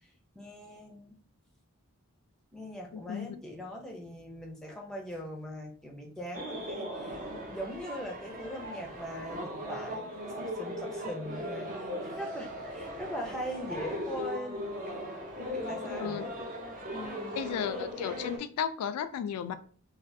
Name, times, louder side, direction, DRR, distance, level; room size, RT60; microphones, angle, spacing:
voice 1, 0.4-1.2 2.5-14.7 15.4-16.3 16.9-17.4, equal, 5° left, 0 dB, 0.5 m, -41 dB
voice 2, 2.9-3.4 15.9-16.2 17.4-19.5, left 8 dB, 85° left, 14 dB, 0.3 m, -34 dB
sound 1, 6.3-18.4, equal, 40° right, 0.6 m, -38 dB
3.3 x 2.3 x 2.6 m, 0.43 s
head